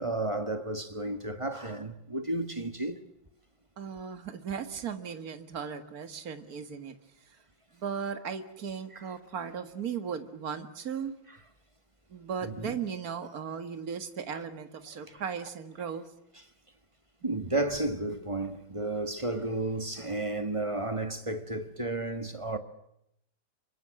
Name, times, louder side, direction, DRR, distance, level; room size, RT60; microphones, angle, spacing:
voice 1, 0.0-3.0 12.4-12.8 14.3-14.4 15.1-15.2 17.2-22.6, right 2 dB, 15° right, 1.5 m, -32 dB
voice 2, 3.8-7.0 7.3-7.4 7.7-11.1 12.1-16.1, right 7 dB, 50° right, 2.2 m, -37 dB
28.0 x 24.0 x 7.7 m
omnidirectional pair, 2.1 m